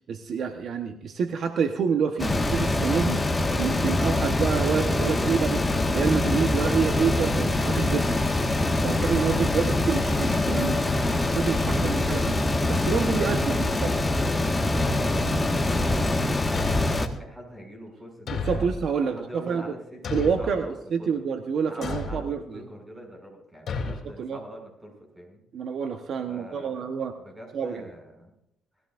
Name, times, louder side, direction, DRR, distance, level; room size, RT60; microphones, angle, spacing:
voice 1, 0.1-3.2 3.6-5.7 5.9-8.2 8.8-10.9 11.2-12.4 12.7-14.0 18.3-19.6 20.1-22.6 23.9-24.4 25.5-27.1 27.5-27.9, right 6 dB, 60° right, 6 dB, 1.1 m, -27 dB
sound 1, 2.2-17.1, left 2 dB, 20° left, 1.6 m, -24 dB
voice 2, 13.3-13.7 14.8-18.7 19.0-21.2 21.7-25.4 26.3-26.8 27.2-28.3, equal, 15° right, 1 dB, 6.6 m, -43 dB
Thump thud, 16.5-17.2 18.3-18.9 20.0-20.6 21.8-22.2 23.7-24.0, left 4 dB, 60° left, 3.1 m, -31 dB
20.0 x 15.0 x 2.6 m, 0.77 s
cardioid pair, 90°, 0 cm